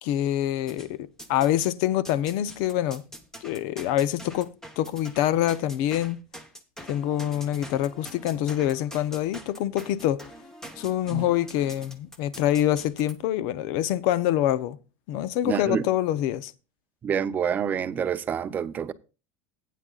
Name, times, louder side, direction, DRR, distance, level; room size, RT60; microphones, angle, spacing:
voice 1, 0.0-3.0 3.4-4.5 4.8-6.2 6.9-10.2 10.8-14.8 15.1-16.5, left 12 dB, 55° left, 0.7 m, -25 dB
sound 1, 0.7-1.7 2.0-13.1, equal, 5° left, 1.1 m, -45 dB
voice 2, 15.4-15.8 17.0-18.9, right 7 dB, 20° right, 0.6 m, -27 dB
15.0 x 9.2 x 2.4 m
supercardioid pair, 160°, 8 cm